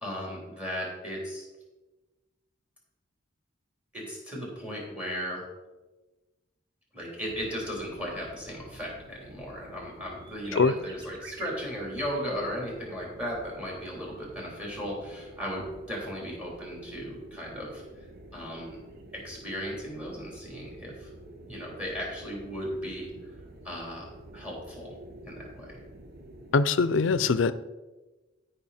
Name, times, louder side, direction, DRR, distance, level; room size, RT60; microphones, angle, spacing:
voice 1, 0.0-1.5 3.9-5.4 6.9-18.0 18.3-18.8 19.1-21.1 21.4-23.1 23.6-24.0 24.3-24.9 25.2-25.8, equal, 5° right, -2 dB, 3.6 m, -36 dB
sound 1, 7.3-26.6, right 2 dB, 55° right, 1.1 m, -49 dB
voice 2, 26.5-27.5, left 4 dB, 70° left, 15 dB, 0.5 m, -22 dB
16.0 x 5.5 x 4.3 m, 1.2 s
head